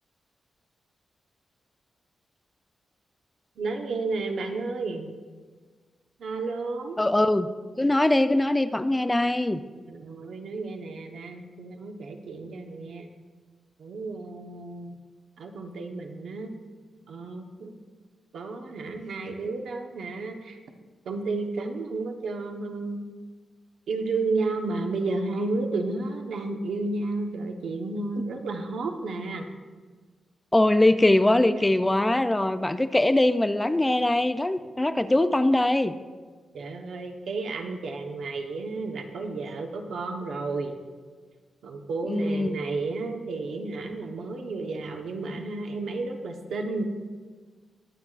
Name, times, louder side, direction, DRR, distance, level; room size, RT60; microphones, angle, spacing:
voice 1, 3.6-5.1 6.2-7.0 9.9-13.1 13.8-15.0 15.4-16.5 17.1-17.7 18.3-20.6 21.0-23.0 23.9-29.5 36.5-40.8 41.6-46.8, right 3 dB, 85° right, 4 dB, 1.0 m, -32 dB
voice 2, 7.0-7.5 7.8-9.6 30.5-35.9 42.1-42.6, left 1 dB, 10° left, 11 dB, 0.3 m, -22 dB
22.0 x 7.8 x 2.5 m, 1.4 s
wide cardioid pair, 170°, 0 cm